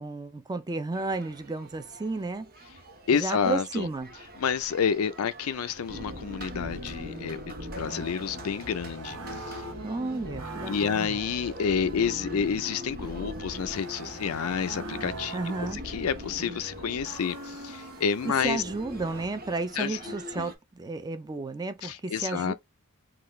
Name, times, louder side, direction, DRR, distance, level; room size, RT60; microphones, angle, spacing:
voice 1, 0.0-2.5 3.1-4.1 9.8-11.2 15.3-15.8 18.2-22.5, right 3 dB, 20° right, 0.4 m, -33 dB
sound 1, 0.9-20.6, equal, 45° right, 1.1 m, -47 dB
voice 2, 3.1-3.9 4.4-9.2 9.5-9.6 10.7-15.5 15.8-18.6 19.8-20.5 21.8-22.5, left 7 dB, 70° left, 0.4 m, -29 dB
sound 2, 5.9-19.3, right 1 dB, 85° right, 1.2 m, -40 dB
3.8 x 2.4 x 3.1 m
head